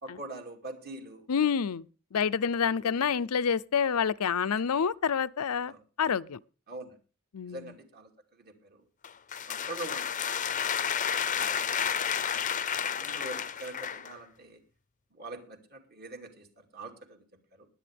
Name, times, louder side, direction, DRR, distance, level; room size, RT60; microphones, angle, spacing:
voice 1, 0.0-1.3 2.8-2.9 5.6-5.8 6.7-7.0 7.5-8.8 9.5-10.6 11.1-12.4 12.9-14.6 15.1-17.2 17.5-17.7, right 2 dB, 45° right, 2.5 m, -44 dB
voice 2, 1.3-1.8 2.1-6.4 7.3-7.7, left 7 dB, 80° left, 0.5 m, -28 dB
sound 1, 9.0-14.1, left 8 dB, 35° left, 0.6 m, -31 dB
21.0 x 8.5 x 3.4 m
head